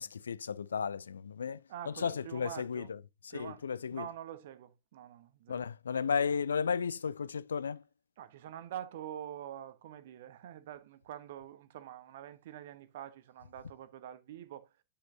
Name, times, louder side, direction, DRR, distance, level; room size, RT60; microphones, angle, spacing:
voice 1, 0.0-1.6 1.9-4.1 5.5-7.8, left 6 dB, 70° left, 0.4 m, -34 dB
voice 2, 1.7-2.9 3.3-3.6 3.9-5.7 8.2-14.7, right 11 dB, 55° right, 1.0 m, -46 dB
9.8 x 5.9 x 2.7 m
figure-of-eight pair, 90°, 0 cm